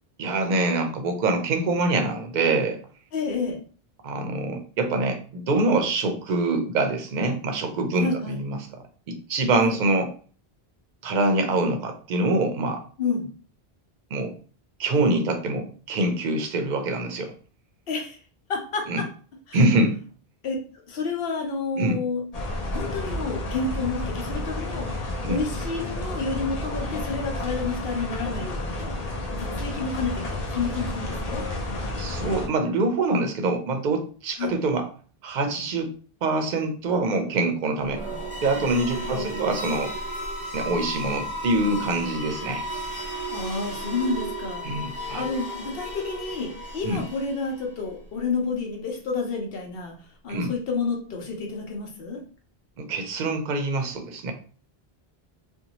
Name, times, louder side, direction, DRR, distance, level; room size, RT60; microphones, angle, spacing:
voice 1, 0.2-2.8 4.0-8.6 9.1-10.1 11.0-12.8 14.1-14.3 14.8-17.3 18.9-19.0 19.5-20.0 21.8-22.0 25.2-25.4 32.0-34.9 35.2-35.9 36.2-38.0 38.4-39.9 40.5-42.6 44.6-45.2 46.8-47.0 50.3-50.5 52.8-54.3, right 2 dB, 55° right, 5 dB, 0.6 m, -25 dB
voice 2, 3.1-3.6 7.9-8.4 9.6-9.8 13.0-13.3 17.9-18.2 18.5-19.1 19.5-19.6 20.4-20.6 20.9-22.2 22.7-25.0 25.3-31.5 34.4-34.6 39.1-39.6 43.3-49.9 50.2-52.2, left 4 dB, 70° left, 1 dB, 0.9 m, -30 dB
sound 1, 22.3-32.5, left 2 dB, 45° left, 0.6 m, -31 dB
sound 2, 37.8-47.7, equal, 10° right, 0.8 m, -34 dB
2.6 x 2.2 x 2.9 m, 0.41 s
omnidirectional pair, 1.0 m